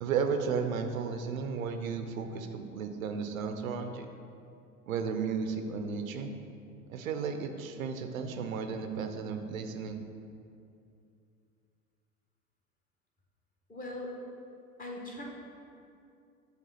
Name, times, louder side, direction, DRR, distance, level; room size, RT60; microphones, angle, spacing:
voice 1, 0.0-4.1 4.9-6.3 6.9-10.0, right 5 dB, 70° right, 7 dB, 0.6 m, -34 dB
voice 2, 13.7-14.1 14.8-15.2, left 1 dB, 20° left, -2 dB, 1.2 m, -40 dB
7.1 x 3.4 x 5.6 m, 2.5 s
figure-of-eight pair, 80°, 42 cm